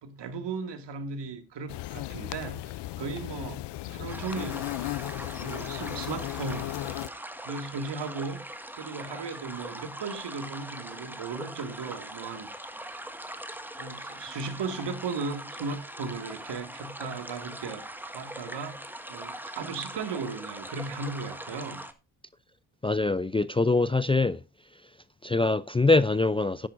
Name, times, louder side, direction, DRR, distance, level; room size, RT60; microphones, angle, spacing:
voice 1, 0.0-4.7 5.4-6.7 7.4-8.4 8.7-12.5 13.8-21.8, right 4 dB, 65° right, 2.2 m, -36 dB
sound 1, 1.7-7.1, left 17 dB, 65° left, 0.6 m, -36 dB
sound 2, 4.1-21.9, right 1 dB, 5° right, 1.5 m, -41 dB
voice 2, 22.8-24.4 25.2-26.7, left 3 dB, 10° left, 0.4 m, -23 dB
12.5 x 10.5 x 2.6 m
supercardioid pair, 55°, 46 cm